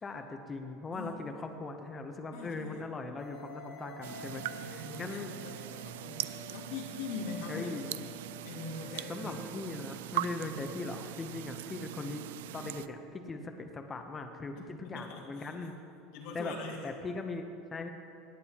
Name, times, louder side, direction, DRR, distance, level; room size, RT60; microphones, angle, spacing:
voice 1, 0.0-5.3 7.5-8.1 9.1-12.3 12.5-15.8 16.3-16.5 16.8-17.9, left 3 dB, 20° left, 5 dB, 0.7 m, -40 dB
voice 2, 2.3-2.8 4.5-7.8 8.4-9.4 14.5-15.5 16.1-16.8, left 4 dB, 65° left, -1 dB, 2.0 m, -43 dB
sound 1, 3.2-9.6, left 4 dB, 45° left, 2.0 m, -50 dB
sound 2, 4.0-12.9, right 14 dB, 90° right, 0.3 m, -41 dB
18.0 x 8.8 x 2.9 m, 2.5 s
supercardioid pair, 145°, 0 cm